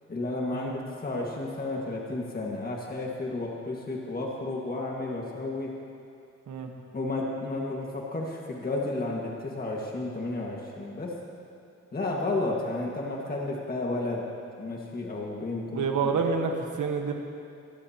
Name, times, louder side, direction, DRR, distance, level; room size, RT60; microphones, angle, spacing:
voice 1, 0.1-0.7 1.0-5.7 6.9-11.2 11.9-14.3 14.5-15.9 16.1-16.2, left 2 dB, 30° left, -2 dB, 1.7 m, -32 dB
voice 2, 15.7-17.1, right 5 dB, 90° right, 2 dB, 1.4 m, -28 dB
24.0 x 15.0 x 2.9 m, 2.5 s
wide cardioid pair, 130°, 29 cm